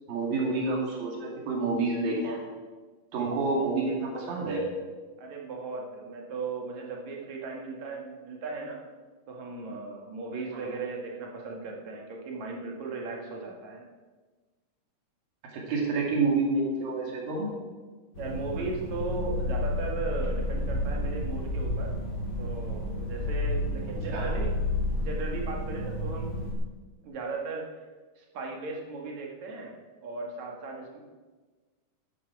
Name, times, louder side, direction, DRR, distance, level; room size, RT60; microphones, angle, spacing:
voice 1, 0.1-2.4 3.1-4.7 10.5-10.7 15.5-17.5 24.1-24.3, right 3 dB, 80° right, -1 dB, 4.3 m, -28 dB
voice 2, 5.2-8.8 9.3-13.8 18.2-22.0 22.4-24.6 25.0-26.3 27.0-27.6 28.2-31.0, right 3 dB, 55° right, 0 dB, 3.0 m, -37 dB
sound 1, 18.1-26.5, left 1 dB, 30° left, 3.3 m, -31 dB
13.5 x 11.5 x 4.7 m, 1.3 s
omnidirectional pair, 4.0 m